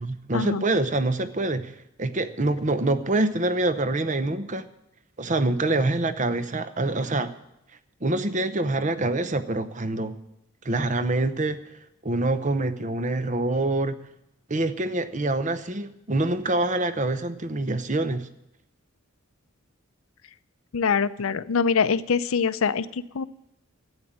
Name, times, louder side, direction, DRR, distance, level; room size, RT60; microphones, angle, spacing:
voice 1, 0.0-4.7 5.2-7.3 8.0-10.2 10.6-11.6 12.0-14.0 14.5-18.3, right 2 dB, 35° right, 11 dB, 0.7 m, -25 dB
voice 2, 20.7-23.2, left 5 dB, 70° left, 14 dB, 0.5 m, -24 dB
12.0 x 8.9 x 8.8 m, 0.84 s
head